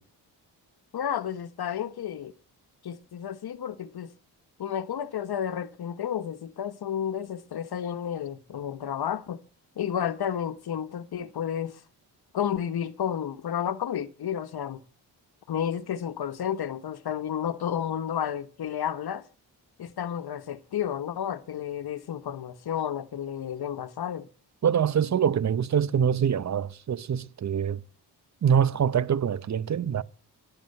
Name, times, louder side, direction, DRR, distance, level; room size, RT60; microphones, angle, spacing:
voice 1, 0.9-2.3 2.8-4.1 4.6-9.4 9.8-11.8 12.3-14.8 15.5-19.2 19.8-24.3, left 9 dB, 65° left, 1.3 m, -31 dB
voice 2, 24.6-27.8 28.4-30.0, right 8 dB, 40° right, 0.8 m, -24 dB
11.0 x 11.0 x 7.9 m
cardioid pair, 75°, 42 cm